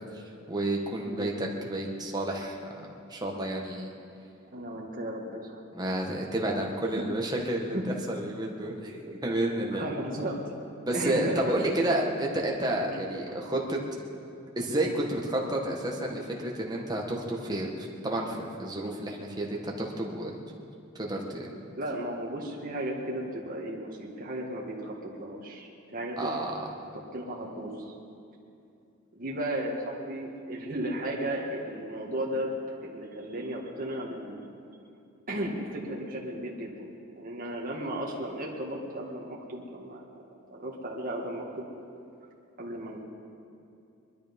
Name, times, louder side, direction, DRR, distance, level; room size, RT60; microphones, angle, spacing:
voice 1, 0.5-3.9 5.7-7.8 8.1-9.8 10.8-13.8 14.5-20.3 20.9-21.5 26.2-26.7, right 1 dB, 20° right, -1 dB, 1.7 m, -30 dB
voice 2, 4.5-5.6 7.7-7.8 9.7-10.5 10.9-11.5 12.9-13.0 21.8-26.4 26.9-27.9 29.2-32.5 32.8-34.4 35.3-36.8 37.2-40.0 40.5-41.7 42.6-43.0, right 1 dB, 40° right, -2 dB, 1.9 m, -35 dB
22.0 x 12.0 x 5.4 m, 2.5 s
head